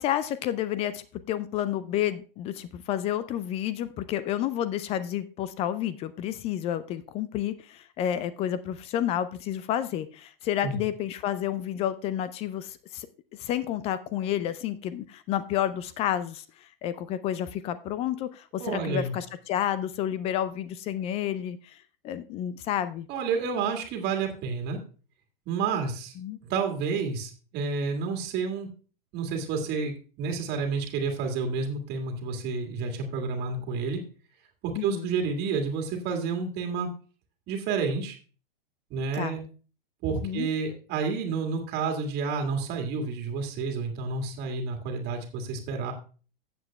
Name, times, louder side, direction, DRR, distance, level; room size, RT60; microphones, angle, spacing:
voice 1, 0.0-13.1 13.3-23.1 26.2-26.4 34.8-35.1 39.1-39.4 40.2-40.5, left 11 dB, 20° left, 15 dB, 0.4 m, -30 dB
voice 2, 18.6-19.2 23.1-24.8 25.5-26.1 26.4-28.7 29.1-34.0 34.6-36.9 37.5-38.2 38.9-39.4 40.0-45.9, right 5 dB, 35° right, 3 dB, 1.8 m, -30 dB
15.5 x 7.6 x 2.2 m, 0.37 s
figure-of-eight pair, 100°, 29 cm